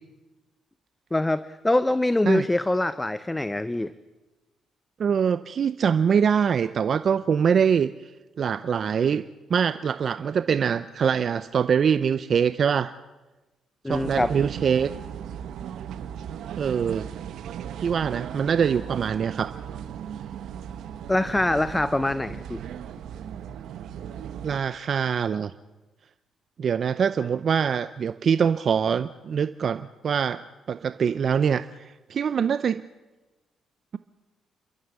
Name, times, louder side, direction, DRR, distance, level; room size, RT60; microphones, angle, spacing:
voice 1, 1.1-3.9 13.8-14.3 21.1-22.6, left 1 dB, 10° left, 14 dB, 0.7 m, -24 dB
voice 2, 5.0-7.9 8.4-9.2 9.5-12.9 13.9-14.9 16.6-17.1 17.8-19.5 24.4-25.5 26.6-30.4 30.7-31.7 32.1-32.8, right 7 dB, 55° right, 13 dB, 0.6 m, -23 dB
sound 1, 13.9-24.6, right 9 dB, 75° right, 1.2 m, -37 dB
29.5 x 13.0 x 8.1 m, 1.1 s
cardioid pair, 90°, 0 cm